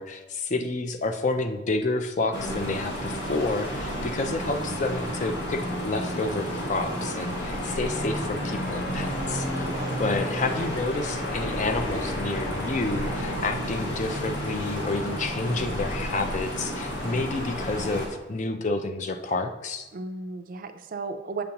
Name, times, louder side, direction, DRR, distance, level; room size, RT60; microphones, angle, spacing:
voice 1, 0.0-9.7 10.0-19.9, left 2 dB, 40° left, 7 dB, 0.4 m, -29 dB
sound 1, 2.3-18.1, equal, 80° left, 1.6 m, -31 dB
Church bell, 6.1-13.4, left 1 dB, 55° left, 0.9 m, -38 dB
voice 2, 9.6-10.2 19.9-21.4, right 3 dB, 45° right, 9 dB, 0.4 m, -35 dB
sound 2, 11.1-11.2 12.0-12.1 13.3-13.5 14.9-15.2 16.2-16.3 17.5-17.6, left 2 dB, 25° left, 1.0 m, -46 dB
6.9 x 5.0 x 2.9 m, 1.1 s
head